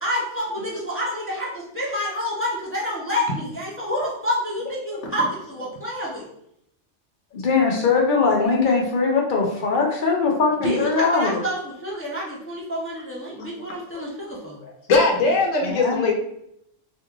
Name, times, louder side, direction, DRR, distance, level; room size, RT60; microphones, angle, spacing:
voice 1, 0.0-6.3 10.6-14.6, equal, 15° left, -5 dB, 0.6 m, -28 dB
voice 2, 7.3-11.4 13.6-13.7 14.6-14.7 15.6-16.0, left 4 dB, 45° left, 0 dB, 0.8 m, -21 dB
voice 3, 14.9-16.1, left 3 dB, 90° left, 0 dB, 1.1 m, -19 dB
3.1 x 2.6 x 3.5 m, 0.77 s
omnidirectional pair, 1.3 m